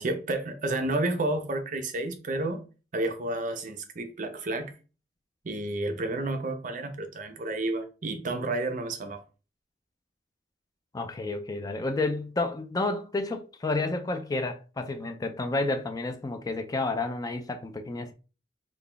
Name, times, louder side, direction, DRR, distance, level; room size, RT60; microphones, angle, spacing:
voice 1, 0.0-2.6 2.9-4.7 5.4-9.2, right 2 dB, 50° right, 0.6 m, -31 dB
voice 2, 10.9-18.1, left 2 dB, 20° left, 0.4 m, -30 dB
3.9 x 2.3 x 3.3 m
head